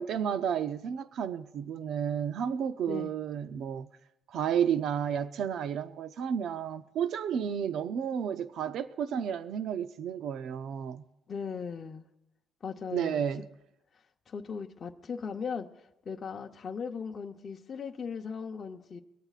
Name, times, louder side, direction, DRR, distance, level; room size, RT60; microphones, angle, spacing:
voice 1, 0.0-3.9 4.3-11.0 12.9-13.4, right 8 dB, 60° right, 0.6 m, -32 dB
voice 2, 11.3-12.1 12.6-13.2 14.3-19.0, left 6 dB, 30° left, 0.8 m, -38 dB
23.0 x 17.0 x 2.5 m
cardioid pair, 160°, 0 cm